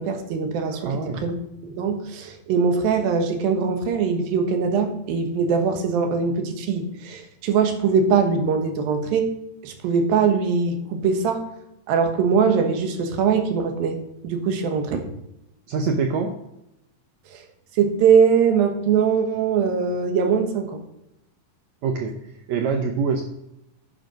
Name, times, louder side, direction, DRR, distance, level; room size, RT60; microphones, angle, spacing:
voice 1, 0.0-1.3 1.6-9.3 9.6-11.4 11.9-14.0 14.2-15.0 17.3-17.4 17.8-20.8, right 6 dB, 90° right, 6 dB, 3.1 m, -22 dB
voice 2, 0.7-1.2 15.7-16.4 21.8-23.2, right 5 dB, 70° right, 4 dB, 1.7 m, -25 dB
10.5 x 6.5 x 5.2 m, 0.85 s
omnidirectional pair, 4.0 m